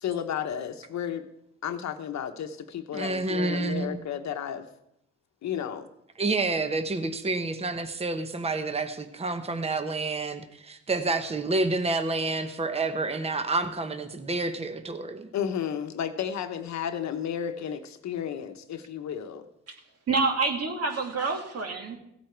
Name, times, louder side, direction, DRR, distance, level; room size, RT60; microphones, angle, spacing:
voice 1, 0.0-1.3 1.6-4.7 5.4-5.9 15.3-19.5, left 8 dB, 65° left, 8 dB, 1.1 m, -32 dB
voice 2, 2.9-4.0 6.2-15.3, right 3 dB, 20° right, 8 dB, 1.1 m, -29 dB
voice 3, 19.7-22.0, right 4 dB, 55° right, 3 dB, 2.4 m, -28 dB
16.0 x 8.4 x 4.6 m, 0.79 s
cardioid pair, 90°, 30 cm